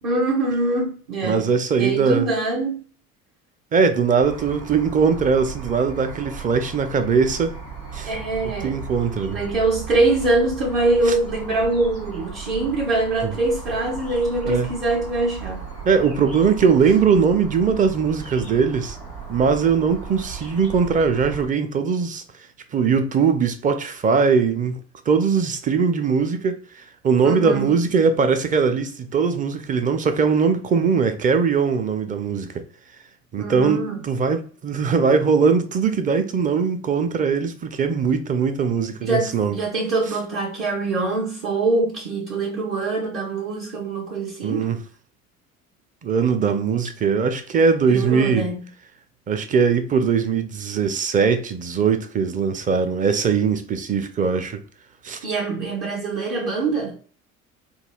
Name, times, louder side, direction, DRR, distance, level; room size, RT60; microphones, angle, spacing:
voice 1, 0.0-1.5 1.7-2.8 8.0-8.8 9.3-15.6 27.2-27.7 33.4-34.0 39.0-44.7 47.9-48.6 55.2-57.0, right 2 dB, 55° right, 1.2 m, -23 dB
voice 2, 1.2-2.3 3.7-7.6 7.9-8.1 8.6-9.4 11.0-11.1 13.2-13.3 14.4-14.7 15.8-19.0 19.3-22.2 22.7-24.8 25.1-32.6 33.3-39.6 44.4-44.8 46.0-48.5 49.3-54.6 55.0-55.2, right 5 dB, 20° right, 0.5 m, -20 dB
sound 1, 4.2-21.5, right 6 dB, 75° right, 1.7 m, -36 dB
5.3 x 2.3 x 2.2 m
figure-of-eight pair, 65°, 41 cm